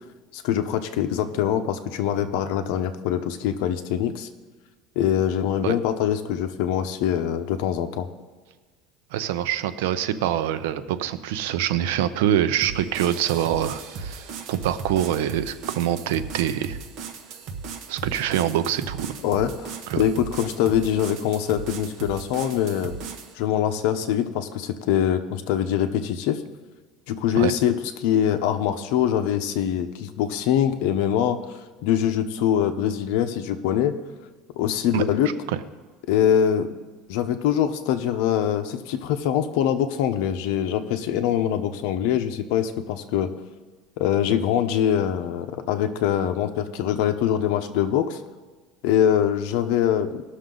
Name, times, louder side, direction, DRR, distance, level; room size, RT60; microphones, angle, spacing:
voice 1, 0.3-4.3 5.0-8.1 19.2-22.9 23.4-26.4 27.1-31.4 31.8-33.9 34.6-35.3 36.1-36.7 37.1-43.3 44.0-48.2 48.8-50.2, left 9 dB, 70° left, 8 dB, 0.9 m, -23 dB
voice 2, 9.1-16.8 17.9-19.1 19.9-20.0 27.3-27.5 34.9-35.0 35.5-35.6, right 11 dB, 85° right, 12 dB, 0.7 m, -25 dB
sound 1, 12.6-23.3, right 5 dB, 55° right, 1.4 m, -37 dB
19.0 x 6.5 x 3.9 m, 1.4 s
cardioid pair, 145°, 0 cm